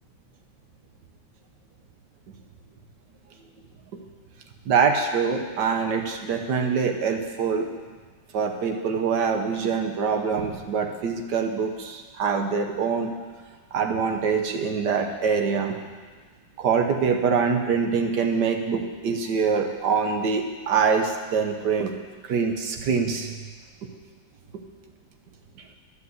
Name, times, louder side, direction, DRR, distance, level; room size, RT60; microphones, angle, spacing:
voice 1, 4.6-7.7 8.3-13.1 13.7-15.8 16.6-21.9 22.2-23.3 23.8-23.9 24.5-24.6, right 5 dB, 65° right, 4 dB, 1.5 m, -24 dB
12.0 x 5.7 x 8.0 m, 1.5 s
omnidirectional pair, 2.0 m